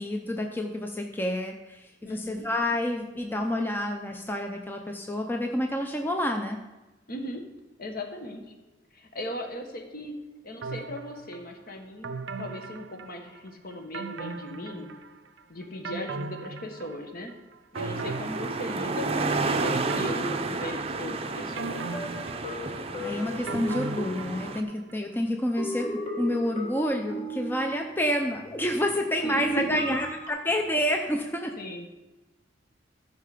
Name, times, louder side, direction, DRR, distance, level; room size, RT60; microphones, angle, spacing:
voice 1, 0.0-6.6 22.6-31.5, left 1 dB, 10° left, 3 dB, 0.6 m, -29 dB
voice 2, 2.0-2.4 7.1-7.5 7.8-8.5 8.9-10.1 10.4-14.9 15.5-17.3 17.7-21.9 29.2-30.0 31.6-31.9, left 1 dB, 50° left, 4 dB, 1.4 m, -37 dB
sound 1, 10.6-11.4 12.0-13.5 13.9-15.3 15.6-17.3 17.8-19.1 19.7-21.1 21.6-24.8 25.1-25.2, right 4 dB, 70° right, 0.5 m, -38 dB
sound 2, 17.7-24.6, right 3 dB, 30° right, 0.6 m, -31 dB
sound 3, 21.9-25.1 25.6-28.2 29.2-30.3, equal, 35° left, 1.7 m, -37 dB
14.0 x 5.7 x 5.0 m, 1.1 s
head